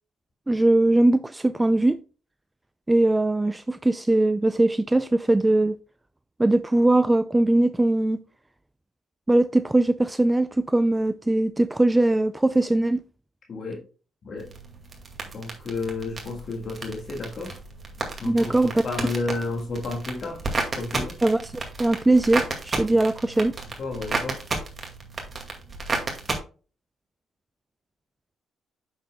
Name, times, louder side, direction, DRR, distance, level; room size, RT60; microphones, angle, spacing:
voice 1, 0.5-2.0 2.9-5.8 6.4-8.2 9.3-13.0 18.3-18.8 21.2-23.5, right 2 dB, 15° right, 0.3 m, -21 dB
voice 2, 13.5-13.8 14.2-14.5 15.3-17.6 18.2-18.5 18.8-20.4 20.8-21.2 23.8-24.4, left 3 dB, 50° left, 1.6 m, -31 dB
sound 1, 14.4-26.4, right 3 dB, 35° right, 2.0 m, -33 dB
8.7 x 6.4 x 2.3 m
cardioid pair, 90°, 0 cm